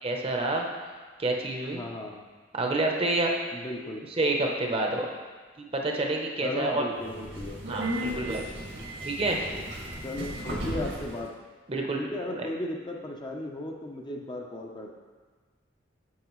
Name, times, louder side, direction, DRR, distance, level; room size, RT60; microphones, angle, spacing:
voice 1, 0.0-0.7 1.2-1.8 2.5-3.3 4.2-5.1 5.6-6.8 7.7-8.4 9.0-9.4 11.7-12.5, right 2 dB, 30° right, 1 dB, 0.8 m, -28 dB
voice 2, 1.7-2.3 3.5-4.0 6.4-7.6 10.0-11.3 12.0-14.9, left 1 dB, 25° left, 0 dB, 0.6 m, -35 dB
Subway metro underground, 7.0-11.2, equal, 85° right, 1.8 m, -35 dB
8.6 x 6.4 x 3.1 m, 1.4 s
head